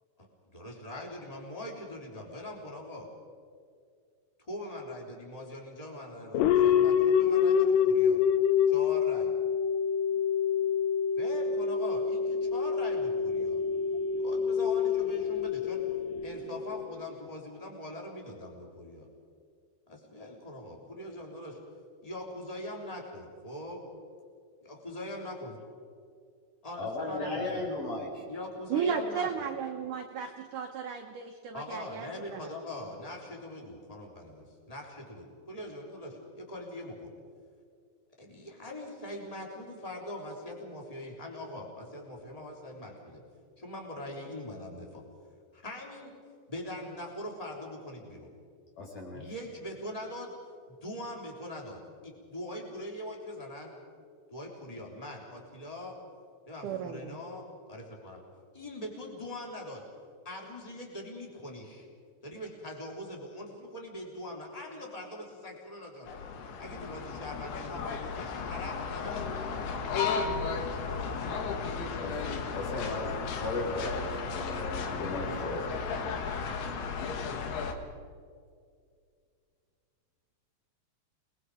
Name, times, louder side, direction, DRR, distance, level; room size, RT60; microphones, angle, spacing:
voice 1, 0.5-3.1 4.5-8.2 8.7-9.3 11.2-13.6 14.2-15.8 16.2-19.1 19.9-21.6 22.0-23.8 24.6-25.6 26.6-27.8 28.3-29.5 31.5-37.1 38.2-43.2 43.6-45.0 45.5-46.1 46.5-48.3 49.1-50.3 50.8-53.7 54.3-55.9 56.5-58.2 58.5-59.8 60.2-61.9 62.2-66.1 66.6-71.4, left 1 dB, 10° left, -1 dB, 3.3 m, -42 dB
sound 1, 6.3-17.0, left 7 dB, 90° left, 1.9 m, -27 dB
voice 2, 26.8-28.2 48.8-49.2 72.0-73.1 73.4-75.8, left 2 dB, 50° left, -2 dB, 6.4 m, -36 dB
voice 3, 28.7-32.5 56.6-57.2, right 7 dB, 70° right, 4 dB, 2.0 m, -34 dB
sound 2, 66.1-77.7, left 5 dB, 70° left, 3.5 m, -34 dB
29.5 x 21.0 x 5.0 m, 2.2 s
omnidirectional pair, 4.9 m